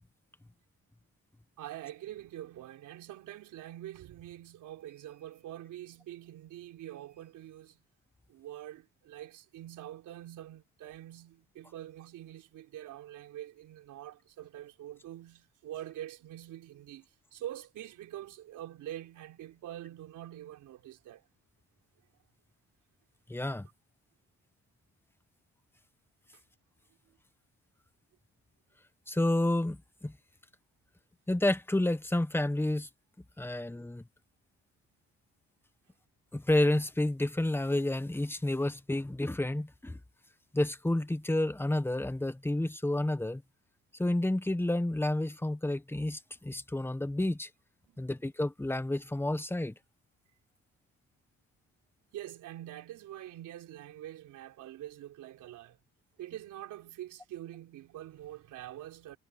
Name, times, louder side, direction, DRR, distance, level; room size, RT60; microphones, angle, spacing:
voice 1, 1.6-7.8 8.3-21.3 33.5-33.7 47.9-48.1 52.1-55.8 56.2-59.2, right 13 dB, 85° right, 3.8 m, -45 dB
voice 2, 23.3-23.7 29.1-30.1 31.3-32.9 33.4-34.0 36.3-40.0 40.5-43.4 44.0-47.5 48.0-49.7, left 1 dB, 5° left, 1.3 m, -30 dB
cardioid pair, 90°, 30 cm